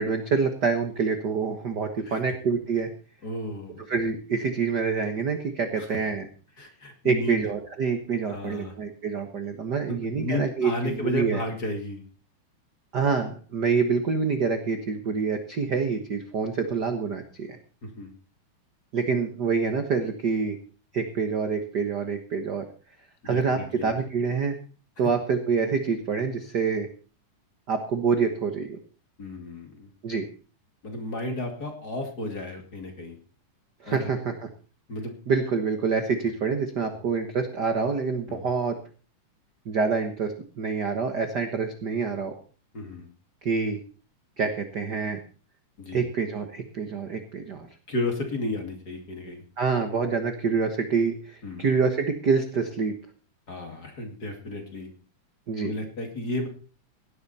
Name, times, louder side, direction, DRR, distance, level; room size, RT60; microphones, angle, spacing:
voice 1, 0.0-2.9 3.9-6.3 7.0-11.4 12.9-17.6 18.9-20.6 20.9-22.6 23.2-24.6 25.0-26.9 27.7-28.8 30.0-30.2 33.8-34.5 35.3-38.8 39.6-42.3 43.4-43.8 44.4-45.2 45.9-47.7 49.6-52.9 55.5-55.7, right 5 dB, 50° right, 6 dB, 1.3 m, -26 dB
voice 2, 3.2-3.8 5.8-5.9 6.6-7.4 8.3-8.7 9.9-12.0 17.8-18.1 23.2-24.0 29.2-29.9 30.8-33.2 33.8-34.1 34.9-35.1 38.3-38.4 42.7-43.1 45.8-46.1 47.9-49.4 51.4-51.7 53.5-54.9 55.6-56.5, left 1 dB, 30° left, 4 dB, 2.6 m, -33 dB
17.5 x 12.0 x 4.3 m, 0.39 s
omnidirectional pair, 3.6 m